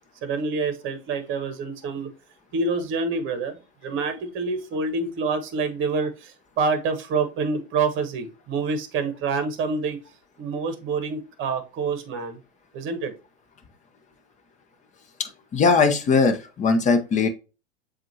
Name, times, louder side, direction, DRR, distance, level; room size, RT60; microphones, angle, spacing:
voice 1, 0.2-2.1 2.5-10.0 10.4-12.4 12.7-13.1, right 4 dB, 35° right, 8 dB, 1.1 m, -27 dB
voice 2, 15.2-17.3, left 4 dB, 20° left, 6 dB, 0.9 m, -20 dB
7.3 x 2.5 x 2.8 m, 0.31 s
hypercardioid pair, 110°, 34 cm